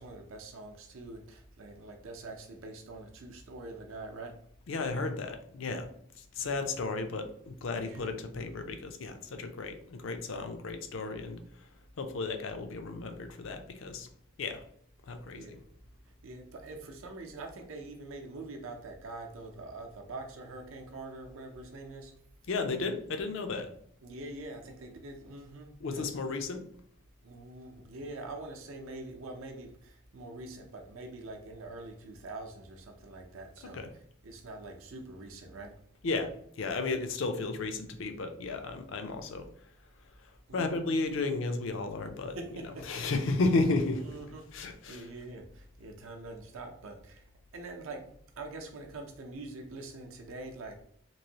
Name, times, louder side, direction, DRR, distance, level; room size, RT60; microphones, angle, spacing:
voice 1, 0.0-4.4 6.4-6.7 7.7-8.1 15.3-15.6 16.2-22.1 24.0-26.2 27.2-33.8 34.2-35.7 40.5-41.0 42.3-43.1 43.9-47.3 47.5-50.8, right 2 dB, 80° right, 3 dB, 0.6 m, -44 dB
voice 2, 4.7-5.9 6.3-11.4 12.0-14.1 14.4-14.6 15.1-15.6 22.5-23.7 25.8-26.6 33.7-33.9 36.0-39.5 40.5-42.4 42.9-44.0 44.5-45.1, left 3 dB, 70° left, 7 dB, 0.4 m, -33 dB
3.0 x 2.6 x 2.8 m, 0.65 s
head